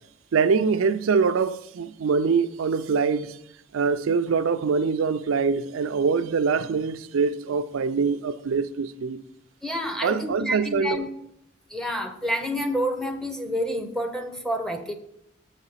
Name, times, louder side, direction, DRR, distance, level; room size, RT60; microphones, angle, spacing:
voice 1, 0.3-3.4 3.7-9.2 10.0-11.0, right 5 dB, 90° right, 0.4 m, -24 dB
voice 2, 9.6-11.1 11.7-14.9, equal, 5° left, 0.6 m, -28 dB
7.2 x 4.9 x 5.6 m
head